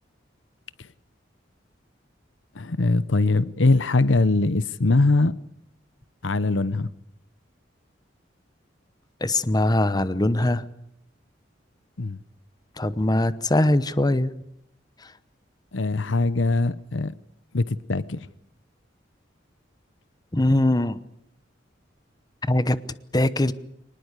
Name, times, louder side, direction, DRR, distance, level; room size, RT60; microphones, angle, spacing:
voice 1, 2.6-5.3 6.2-6.9 12.0-12.2 15.7-17.1 17.5-18.2, left 3 dB, 80° left, 0.9 m, -22 dB
voice 2, 9.2-10.6 12.8-14.3 20.3-21.0 22.5-22.8 23.1-23.5, left 1 dB, 20° left, 0.9 m, -21 dB
24.5 x 20.0 x 8.3 m
head